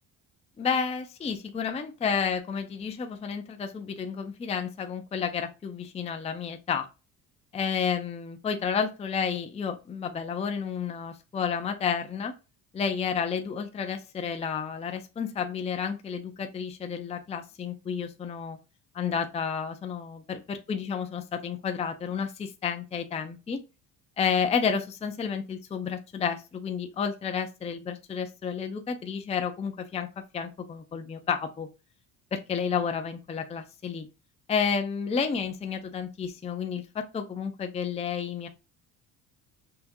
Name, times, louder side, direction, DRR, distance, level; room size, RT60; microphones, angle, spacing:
voice 1, 0.6-6.9 7.5-12.3 12.7-18.6 18.9-23.6 24.2-31.7 32.3-34.1 34.5-38.5, left 6 dB, 15° left, 6 dB, 0.5 m, -31 dB
5.8 x 2.8 x 2.6 m, 0.28 s
cardioid pair, 140°, 39 cm